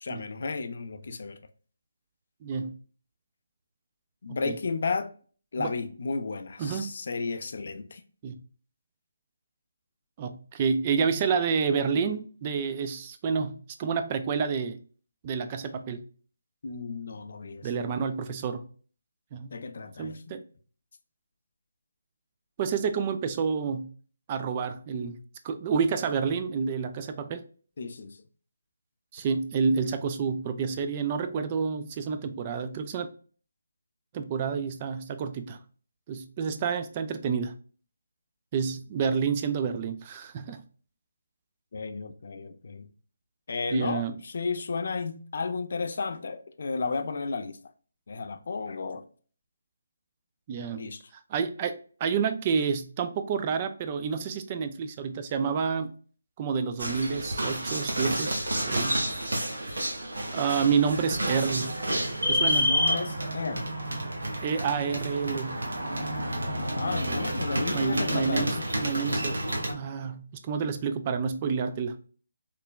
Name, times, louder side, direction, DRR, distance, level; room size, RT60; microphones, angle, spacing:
voice 1, 0.0-1.4 4.2-5.1 5.5-8.0 16.6-17.7 19.5-20.3 27.8-28.2 41.7-42.9 43.5-47.6 48.1-49.0 50.7-51.0 62.5-63.7 66.8-68.5, left 4 dB, 60° left, 0.4 m, -33 dB
voice 2, 2.4-2.7 4.5-4.6 5.6-5.7 6.6-6.9 8.2-8.4 10.2-14.8 15.2-16.0 17.6-18.6 19.3-19.5 20.0-20.4 22.6-23.9 24.3-25.2 25.4-27.4 29.1-33.1 34.1-35.6 36.1-37.5 38.5-40.6 43.7-44.1 50.5-50.8 51.3-55.9 56.4-58.4 58.7-59.0 60.3-61.7 62.3-62.8 64.4-65.6 67.7-69.4 69.7-72.0, right 6 dB, 30° right, 0.3 m, -29 dB
sound 1, 56.8-69.7, equal, 80° right, 0.8 m, -29 dB
3.1 x 2.1 x 2.2 m
figure-of-eight pair, 155°, 0 cm